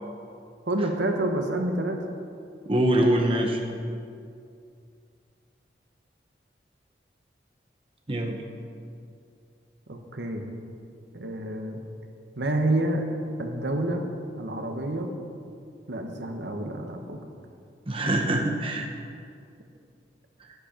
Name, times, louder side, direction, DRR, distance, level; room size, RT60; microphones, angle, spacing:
voice 1, 0.7-2.0 9.9-10.5 11.1-11.8 12.4-13.1 13.4-14.0 14.4-15.1 15.9-17.2, right 1 dB, 75° right, 4 dB, 1.2 m, -28 dB
voice 2, 2.7-3.6 8.1-8.4 17.9-18.9, right 1 dB, 30° right, 2 dB, 0.9 m, -24 dB
11.5 x 11.0 x 5.3 m, 2.4 s
head